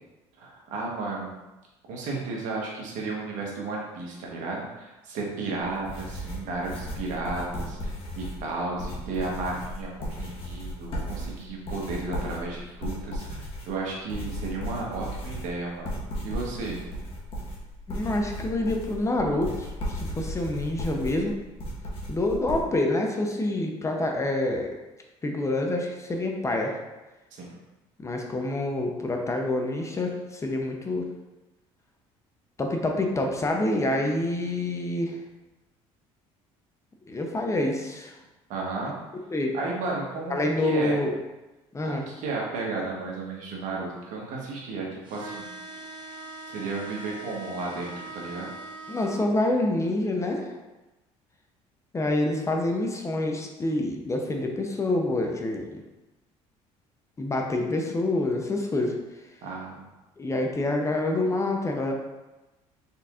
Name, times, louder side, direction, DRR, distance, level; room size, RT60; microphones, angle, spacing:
voice 1, 0.4-1.3 1.9-15.9 16.2-16.8 27.3-27.6 38.5-39.0 39.5-40.9 41.8-45.5 46.5-48.5 59.4-59.8, right 3 dB, 70° right, -2 dB, 1.2 m, -33 dB
sound 1, 5.6-22.6, equal, 45° left, 1.2 m, -35 dB
voice 2, 17.9-21.4 22.1-24.7 25.2-26.8 28.0-31.1 32.6-35.2 37.1-38.1 39.3-39.5 40.3-41.1 41.7-42.0 48.9-50.5 51.9-55.8 57.2-59.0 60.2-61.9, left 2 dB, 20° left, 2 dB, 0.6 m, -27 dB
sound 2, 45.1-49.2, right 2 dB, 35° right, 1.0 m, -41 dB
4.1 x 4.0 x 2.4 m, 1.1 s
supercardioid pair, 90°, 13 cm